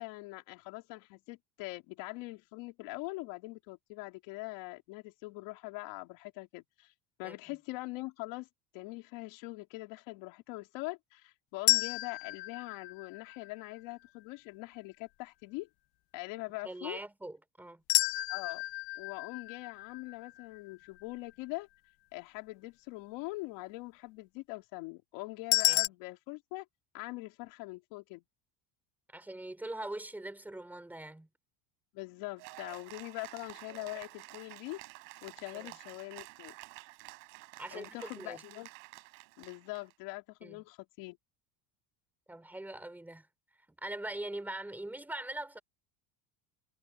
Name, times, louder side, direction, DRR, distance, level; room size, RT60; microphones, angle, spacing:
voice 1, 0.0-6.9 7.2-8.5 8.7-15.7 16.1-17.0 18.3-18.6 19.0-21.7 22.1-26.7 26.9-28.2 31.9-34.8 35.2-36.5 37.7-38.7 39.4-41.2, left 22 dB, 70° left, 2.7 m, -43 dB
sound 1, 11.7-13.8 17.9-21.0 25.5-25.9, left 21 dB, 55° left, 0.8 m, -31 dB
voice 2, 16.6-17.8 25.7-25.8 29.1-31.3 35.5-35.7 37.6-38.4 40.4-40.6 42.3-43.3 43.8-45.6, right 1 dB, 5° right, 3.5 m, -42 dB
Cheering / Applause, 32.4-39.9, right 30 dB, 75° right, 4.0 m, -50 dB
cardioid pair, 175°, 46 cm